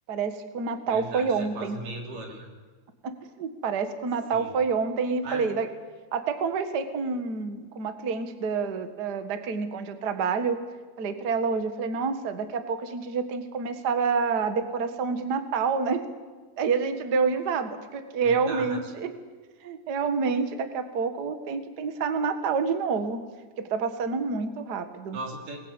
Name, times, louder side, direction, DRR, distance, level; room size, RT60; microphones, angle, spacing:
voice 1, 0.1-1.8 3.0-3.1 3.4-5.7 6.1-10.6 11.0-16.0 16.6-19.1 19.6-23.2 23.6-25.2, right 5 dB, 90° right, 8 dB, 0.8 m, -28 dB
voice 2, 0.9-2.5 4.3-4.5 5.2-5.5 18.2-18.8 25.1-25.6, right 2 dB, 55° right, 2 dB, 5.0 m, -38 dB
24.0 x 21.0 x 9.0 m, 1.4 s
omnidirectional pair, 4.6 m